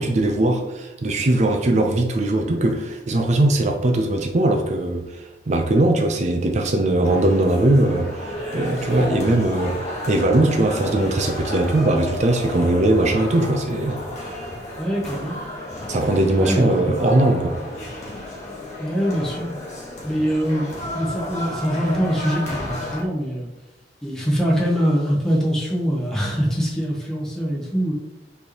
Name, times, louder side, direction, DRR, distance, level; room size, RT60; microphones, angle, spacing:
voice 1, 0.0-14.0 15.9-17.6, right 1 dB, 40° right, 3 dB, 0.5 m, -20 dB
sound 1, 7.0-23.0, left 1 dB, 40° left, 1.1 m, -32 dB
voice 2, 14.8-15.4 16.4-17.0 18.8-19.6 20.0-23.5 24.0-27.9, equal, 5° left, -5 dB, 0.9 m, -23 dB
4.3 x 3.3 x 2.9 m, 0.99 s
head